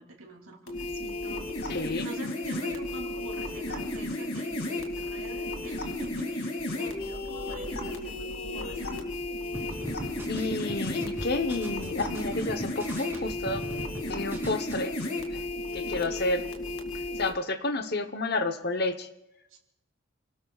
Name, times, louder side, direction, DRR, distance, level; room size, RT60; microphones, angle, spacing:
voice 1, 0.0-1.8 2.0-8.9 16.0-16.2 19.5-19.6, right 2 dB, 75° right, 1 dB, 3.0 m, -45 dB
sound 1, 0.7-17.3, left 2 dB, 90° left, 2.3 m, -34 dB
voice 2, 1.7-2.1 10.3-13.6 14.1-14.9 15.3-15.4 15.7-16.5 17.1-19.1, left 2 dB, 50° left, 8 dB, 0.9 m, -30 dB
sound 2, 9.5-14.0 14.3-14.7, equal, 10° right, 2.7 m, -40 dB
29.0 x 18.0 x 2.4 m, 0.89 s
head